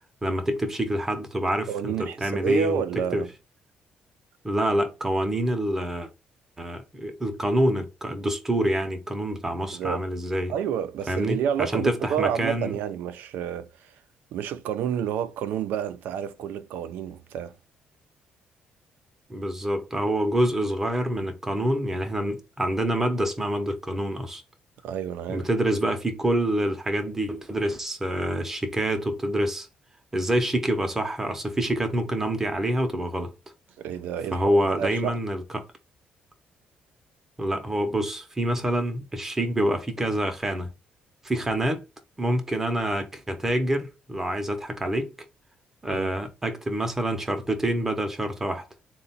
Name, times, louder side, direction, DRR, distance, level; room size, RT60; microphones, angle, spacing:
voice 1, 0.2-2.8 3.1-3.2 4.4-6.1 6.6-10.5 11.1-12.8 19.3-24.4 25.3-29.7 30.1-33.3 34.3-35.6 37.4-40.7 41.2-41.8 42.2-45.1 45.8-48.6, right 1 dB, 10° right, 0.7 m, -26 dB
voice 2, 1.7-3.3 9.7-10.0 10.5-14.0 14.3-17.6 24.8-25.5 33.8-35.2 45.9-46.2, right 9 dB, 80° right, 0.4 m, -30 dB
3.9 x 2.2 x 4.0 m
cardioid pair, 160°, 3 cm